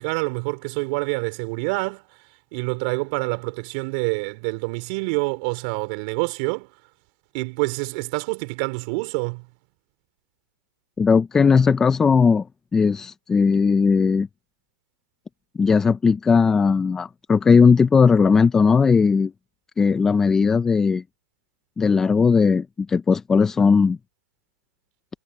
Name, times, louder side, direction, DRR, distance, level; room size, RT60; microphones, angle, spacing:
voice 1, 0.0-2.0 2.5-6.7 7.3-9.5, right 30 dB, 25° right, 4.8 m, -27 dB
voice 2, 11.0-12.5 12.7-14.3 15.6-19.3 19.8-21.0 21.8-24.0, left 5 dB, 5° left, 0.5 m, -18 dB
hypercardioid pair, 160°, 10 cm